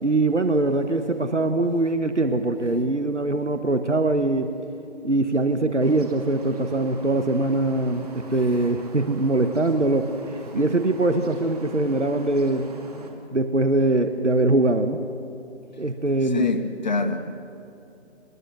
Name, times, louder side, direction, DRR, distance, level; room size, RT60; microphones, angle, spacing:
voice 1, 0.0-4.5 5.0-10.1 10.5-12.7 13.3-15.0 15.8-16.5, right 2 dB, 85° right, 1.4 m, -22 dB
sound 1, 5.8-13.1, right 3 dB, 35° right, 2.2 m, -43 dB
voice 2, 16.2-17.3, left 2 dB, 40° left, 1.5 m, -26 dB
23.0 x 20.5 x 6.3 m
figure-of-eight pair, 150°, 35 cm